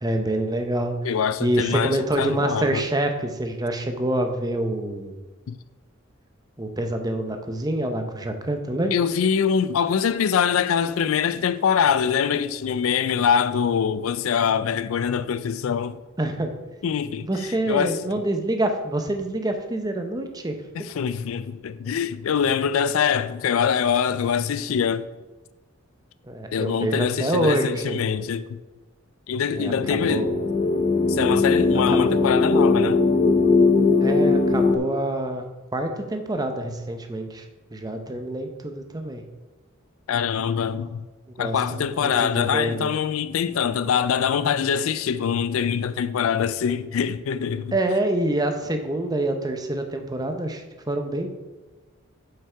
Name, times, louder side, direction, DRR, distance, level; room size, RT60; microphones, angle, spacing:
voice 1, 0.0-1.0 1.4-5.2 6.6-9.0 16.2-16.5 17.2-20.6 26.3-28.0 29.6-30.3 31.9-32.0 34.0-35.4 35.7-37.4 37.7-39.2 41.4-42.9 47.7-51.4, right 1 dB, 20° right, 0.7 m, -26 dB
voice 2, 1.0-2.8 5.5-5.6 8.9-16.0 16.8-18.0 20.7-25.1 26.5-28.6 29.3-30.3 31.1-33.0 40.1-41.1 41.4-47.8, left 7 dB, 75° left, 0.4 m, -24 dB
sound 1, 29.5-34.8, left 3 dB, 30° left, 0.6 m, -20 dB
7.3 x 5.6 x 4.5 m
head